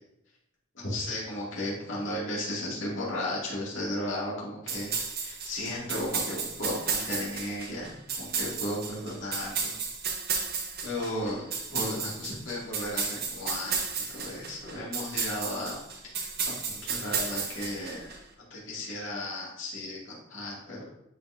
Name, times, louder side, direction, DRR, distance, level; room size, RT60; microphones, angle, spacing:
voice 1, 0.7-9.8 10.8-15.8 16.1-18.1 18.5-20.8, left 1 dB, 85° left, -6 dB, 2.4 m, -35 dB
sound 1, 4.7-18.2, right 5 dB, 55° right, 1.0 m, -33 dB
10.5 x 3.9 x 2.6 m, 0.81 s
head